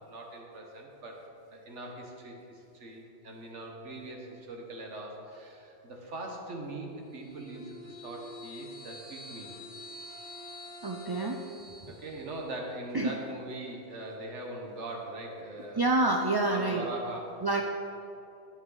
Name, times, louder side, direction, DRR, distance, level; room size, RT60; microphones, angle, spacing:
voice 1, 0.1-1.2 1.5-9.5 11.9-15.9 16.5-17.4, right 2 dB, 80° right, 1 dB, 1.7 m, -41 dB
Bowed string instrument, 7.2-11.6, equal, 5° left, 2.2 m, -49 dB
sound 1, 7.2-12.6, left 2 dB, 15° right, 1.5 m, -49 dB
voice 2, 10.8-11.4 12.9-13.1 15.8-16.9 17.4-17.6, right 2 dB, 35° right, 1 dB, 0.4 m, -27 dB
11.0 x 8.8 x 4.0 m, 2.7 s
omnidirectional pair, 1.2 m